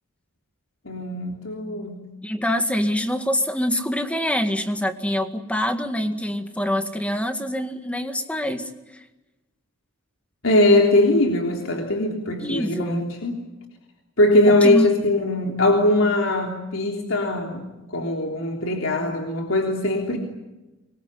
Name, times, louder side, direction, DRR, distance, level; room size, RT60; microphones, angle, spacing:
voice 1, 0.8-2.0 10.4-13.3 14.2-20.2, left 1 dB, 90° left, 1 dB, 3.5 m, -21 dB
voice 2, 2.2-8.7 12.4-13.1 14.5-14.9, equal, 5° left, 7 dB, 1.9 m, -25 dB
25.0 x 22.0 x 9.9 m, 1.1 s
head